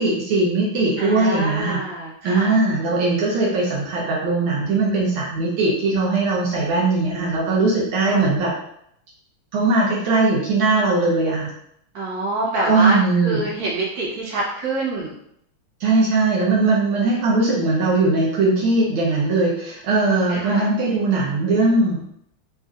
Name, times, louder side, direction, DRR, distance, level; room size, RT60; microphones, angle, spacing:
voice 1, 0.0-1.8 2.2-8.5 9.5-11.5 12.6-13.5 15.8-22.0, right 3 dB, 75° right, -5 dB, 1.5 m, -20 dB
voice 2, 1.0-2.6 8.0-8.2 11.9-15.1 20.3-20.7, right 2 dB, 50° right, -5 dB, 1.4 m, -26 dB
4.2 x 2.4 x 2.4 m, 0.72 s
omnidirectional pair, 2.4 m